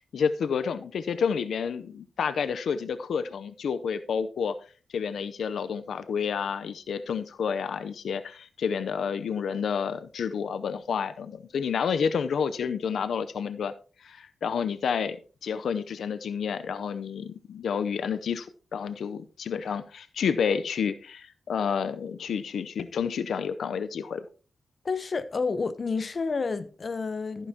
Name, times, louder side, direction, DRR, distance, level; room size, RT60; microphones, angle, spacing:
voice 1, 0.0-4.6 4.9-13.7 14.0-15.2 15.4-24.3, left 6 dB, 90° left, 0.6 m, -30 dB
voice 2, 24.8-27.5, left 4 dB, 50° left, 0.8 m, -30 dB
13.5 x 9.9 x 2.8 m
wide cardioid pair, 90°, 0 cm